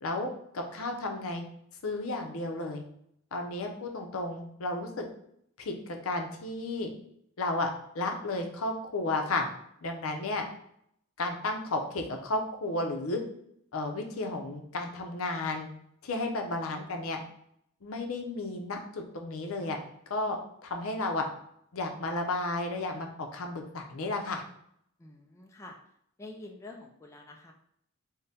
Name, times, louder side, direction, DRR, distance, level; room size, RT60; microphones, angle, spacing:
voice 1, 0.0-1.4 1.8-2.8 3.3-5.1 5.6-6.9 7.4-7.7 7.9-9.5 9.8-10.4 11.2-13.2 13.7-15.7 16.0-17.2 17.8-19.8 20.1-21.3 21.7-24.4, left 2 dB, 75° left, 3 dB, 0.6 m, -33 dB
voice 2, 25.0-25.8 26.2-27.5, left 2 dB, 15° left, 2 dB, 0.3 m, -47 dB
3.7 x 2.2 x 4.0 m, 0.71 s
head